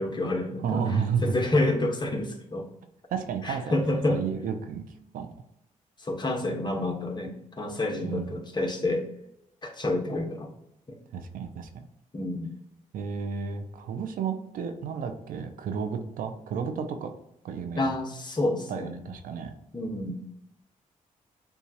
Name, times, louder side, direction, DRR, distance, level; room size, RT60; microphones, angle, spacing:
voice 1, 0.0-2.7 3.4-4.2 6.0-9.1 9.6-10.5 10.9-11.0 12.1-12.5 17.8-19.0 19.7-20.2, left 2 dB, 30° left, 2 dB, 1.1 m, -29 dB
voice 2, 0.6-1.4 3.1-3.8 4.1-4.9 5.1-5.3 8.0-8.3 11.1-11.7 12.9-17.1 17.4-17.9 18.7-19.5, right 6 dB, 90° right, 7 dB, 0.6 m, -31 dB
7.0 x 2.4 x 2.8 m, 0.80 s
cardioid pair, 75°, 14 cm